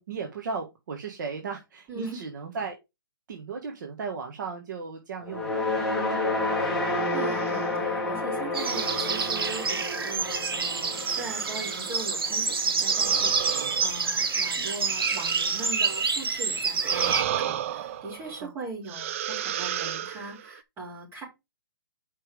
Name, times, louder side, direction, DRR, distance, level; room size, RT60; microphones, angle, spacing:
voice 1, 0.0-2.8 3.3-6.9 18.2-18.5, right 5 dB, 55° right, 3 dB, 1.5 m, -36 dB
voice 2, 1.9-2.2 7.1-21.2, right 3 dB, 20° right, -3 dB, 4.6 m, -40 dB
sound 1, 5.2-13.6, left 2 dB, 5° left, 1.4 m, -30 dB
sound 2, 7.0-7.7 8.6-10.2 10.9-12.1 12.8-16.2 16.8-18.5 18.9-20.6, right 11 dB, 35° right, 0.5 m, -35 dB
sound 3, 8.5-17.2, right 5 dB, 85° right, 2.1 m, -27 dB
5.5 x 5.1 x 5.0 m, 0.22 s
hypercardioid pair, 160°, 12 cm